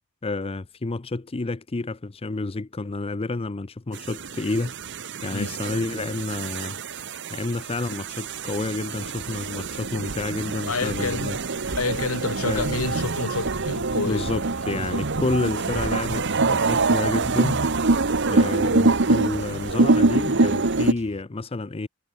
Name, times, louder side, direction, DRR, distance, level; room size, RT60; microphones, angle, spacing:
voice 1, 0.2-4.7 5.2-6.8 7.3-11.4 12.4-12.7 14.0-17.6 18.3-21.9, left 2 dB, 25° left, 0.6 m, -29 dB
sound 1, 3.9-20.9, right 3 dB, 55° right, 1.4 m, -25 dB
voice 2, 10.7-11.3 11.8-14.3 14.9-15.0, left 3 dB, 85° left, 2.2 m, -28 dB
Drum kit, 12.9-21.2, right 1 dB, 30° right, 5.1 m, -49 dB
head